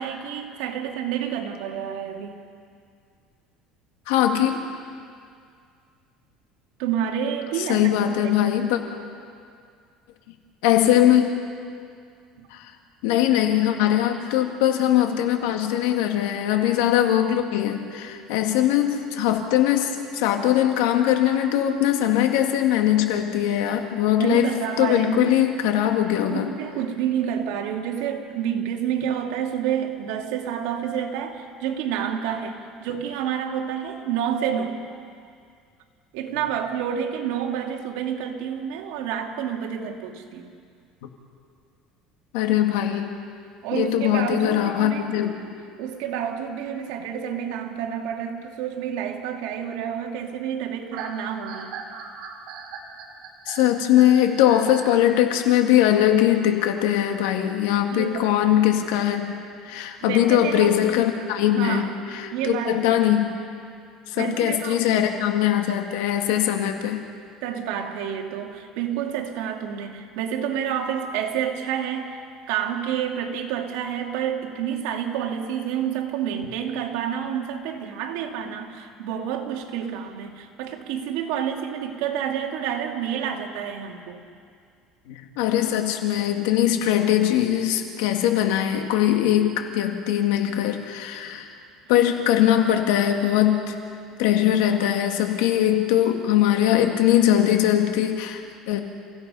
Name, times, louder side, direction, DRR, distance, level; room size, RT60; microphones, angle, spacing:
voice 1, 0.0-2.4 6.8-8.5 12.4-12.5 24.2-25.4 26.3-34.8 36.1-40.5 43.6-45.1 45.8-51.7 57.9-58.3 60.0-61.0 61.5-61.9 62.3-63.0 64.2-65.0 67.4-84.2, right 9 dB, 80° right, 2 dB, 2.4 m, -29 dB
voice 2, 4.1-4.6 7.7-8.8 10.6-11.4 12.5-12.7 13.0-26.5 42.3-43.1 43.7-45.4 53.5-59.4 59.6-63.3 64.1-67.0 85.1-91.5 91.9-93.8 94.2-98.8, left 11 dB, 85° left, 4 dB, 2.2 m, -21 dB
sound 1, 50.9-55.0, right 6 dB, 65° right, 3.0 m, -38 dB
30.0 x 16.5 x 5.6 m, 2.2 s
cardioid pair, 135°, 0 cm